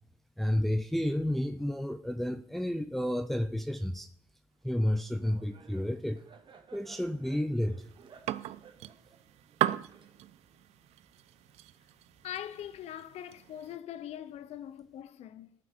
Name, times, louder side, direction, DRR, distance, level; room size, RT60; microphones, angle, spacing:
voice 1, 0.4-4.1 4.6-6.2 6.7-7.9, left 1 dB, ahead, 0.5 m, -31 dB
Laughter, 4.6-10.5, right 6 dB, 45° right, 1.2 m, -58 dB
sound 1, 7.8-13.8, right 13 dB, 70° right, 0.4 m, -38 dB
voice 2, 12.2-15.5, left 10 dB, 70° left, 0.7 m, -42 dB
14.5 x 5.7 x 3.6 m
cardioid pair, 85°, 11 cm